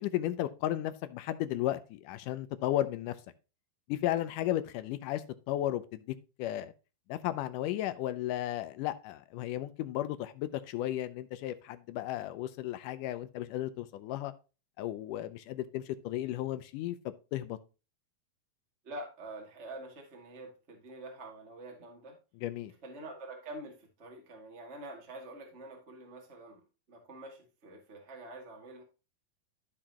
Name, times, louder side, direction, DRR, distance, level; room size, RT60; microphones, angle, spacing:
voice 1, 0.0-3.2 3.9-6.0 6.4-6.7 7.1-14.3 14.8-17.0 17.3-17.6 22.4-22.7, left 13 dB, 80° left, 2.1 m, -34 dB
voice 2, 18.8-22.2 22.8-26.6 26.9-28.8, right 1 dB, 25° right, 1.9 m, -46 dB
13.5 x 5.0 x 2.9 m
omnidirectional pair, 3.9 m